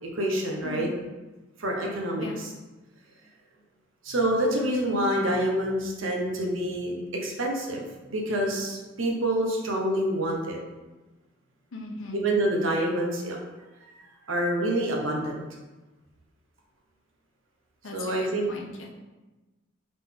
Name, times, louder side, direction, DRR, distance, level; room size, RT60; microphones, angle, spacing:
voice 1, 0.0-0.9 1.6-2.5 4.0-7.8 8.1-10.6 12.1-13.4 14.3-15.4 17.9-18.5, right 1 dB, 80° right, 0 dB, 0.9 m, -27 dB
voice 2, 0.6-1.0 2.2-2.4 11.7-12.2 17.8-18.9, left 2 dB, 80° left, 1 dB, 0.8 m, -38 dB
4.0 x 3.8 x 3.5 m, 1.1 s
head